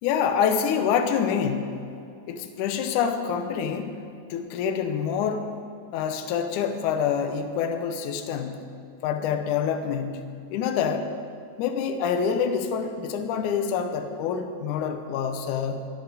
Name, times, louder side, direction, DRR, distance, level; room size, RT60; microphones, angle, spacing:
voice 1, 0.0-1.8 2.3-4.0 4.3-5.5 5.9-8.6 9.0-10.2 10.5-11.1 11.6-15.9, left 7 dB, 70° left, 7 dB, 2.1 m, -26 dB
22.0 x 8.4 x 5.0 m, 2.5 s
omnidirectional pair, 4.2 m